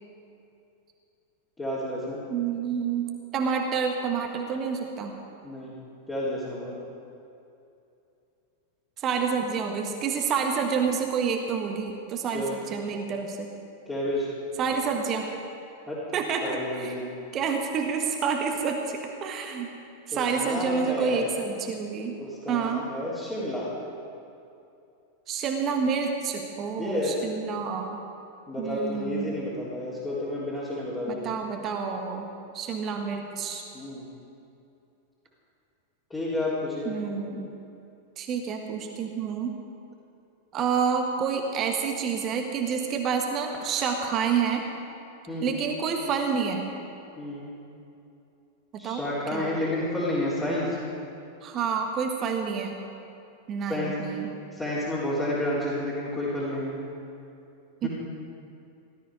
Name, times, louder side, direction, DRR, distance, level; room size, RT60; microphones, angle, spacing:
voice 1, 1.6-2.2 5.4-5.7 6.1-6.8 12.3-12.5 13.9-14.3 15.9-16.0 16.4-17.1 20.1-21.3 22.2-23.7 26.8-27.2 28.5-31.2 33.7-34.1 36.1-36.9 45.3-45.5 47.2-47.5 48.8-50.8 53.7-53.9 54.5-56.8 57.8-57.9, left 1 dB, 15° left, -9 dB, 3.8 m, -30 dB
voice 2, 2.3-5.1 9.0-13.5 14.6-15.3 16.1-16.9 17.3-19.7 20.1-22.2 22.5-22.8 25.3-28.0 28.6-29.4 31.1-32.3 32.5-33.6 36.8-37.5 38.2-39.6 40.5-44.6 45.4-46.7 48.7-49.0 49.3-49.5 51.4-52.8 53.5-54.3 57.8-57.9, right 6 dB, 30° right, 3 dB, 1.5 m, -28 dB
17.5 x 13.0 x 5.0 m, 2.7 s
figure-of-eight pair, 90°, 0 cm